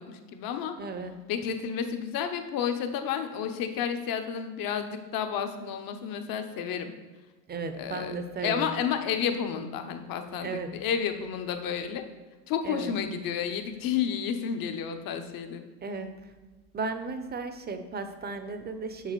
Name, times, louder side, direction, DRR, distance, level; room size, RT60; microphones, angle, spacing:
voice 1, 0.0-0.7 1.3-6.9 7.8-12.0 12.5-15.6, left 8 dB, 45° left, 7 dB, 1.0 m, -31 dB
voice 2, 0.8-1.1 7.5-8.7 10.4-10.8 12.6-13.0 15.8-16.3 16.7-19.1, right 4 dB, 20° right, 9 dB, 0.7 m, -35 dB
7.3 x 6.5 x 3.2 m, 1.3 s
hypercardioid pair, 85°, 50 cm